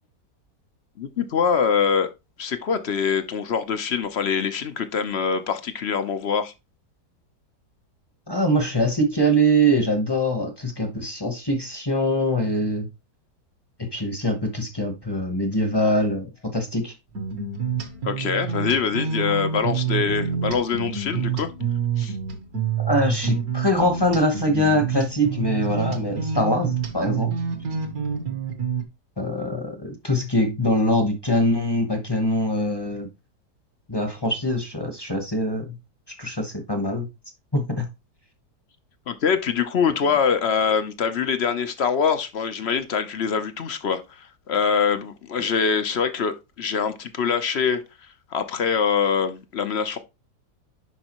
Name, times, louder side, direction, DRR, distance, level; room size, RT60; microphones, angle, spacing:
voice 1, 1.0-2.1 2.4-6.5 18.0-21.5 22.0-22.2 39.1-50.0, left 6 dB, 50° left, 0.8 m, -24 dB
voice 2, 8.3-12.9 13.8-16.9 22.8-27.3 29.2-33.1 33.9-35.8 36.1-37.1 37.5-37.9, equal, 20° left, 0.9 m, -23 dB
sound 1, 17.2-28.8, right 7 dB, 60° right, 1.7 m, -27 dB
10.5 x 4.6 x 3.0 m
omnidirectional pair, 1.8 m